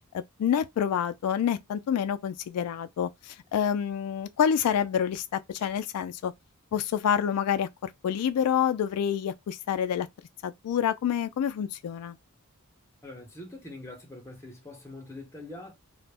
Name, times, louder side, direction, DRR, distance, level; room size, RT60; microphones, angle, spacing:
voice 1, 0.1-6.3 6.7-10.1 10.4-12.2, left 8 dB, 90° left, 0.3 m, -28 dB
voice 2, 13.0-15.7, left 2 dB, 10° left, 0.8 m, -43 dB
2.1 x 2.0 x 3.3 m
head